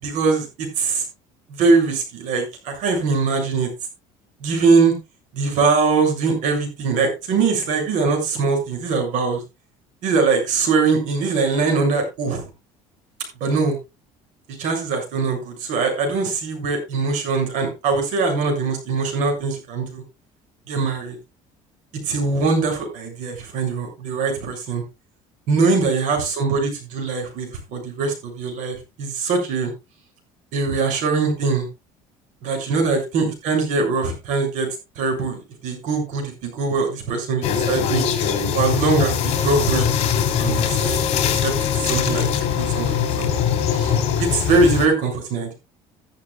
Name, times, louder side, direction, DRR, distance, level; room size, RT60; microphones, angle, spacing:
voice 1, 0.0-1.1 1.5-3.7 4.4-4.9 5.3-9.4 10.0-12.4 13.4-13.8 14.6-20.0 20.7-21.2 22.1-24.8 25.5-29.7 30.5-31.7 32.4-34.7 35.0-38.1 38.5-39.9 40.3-41.0 41.4-45.5, right 4 dB, 65° right, 3 dB, 7.0 m, -22 dB
sound 1, 37.4-44.9, left 8 dB, 50° left, 3.2 m, -22 dB
14.5 x 12.5 x 2.4 m, 0.25 s
cardioid pair, 140°, 14 cm